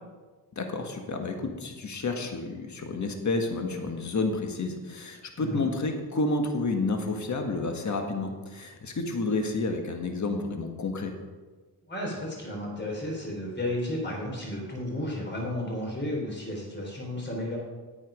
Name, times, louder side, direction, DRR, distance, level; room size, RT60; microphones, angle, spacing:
voice 1, 0.5-11.1, left 3 dB, 45° left, 4 dB, 1.7 m, -30 dB
voice 2, 11.9-17.6, left 1 dB, 25° left, -2 dB, 4.0 m, -33 dB
9.8 x 8.6 x 5.2 m, 1.4 s
cardioid pair, 80°, 41 cm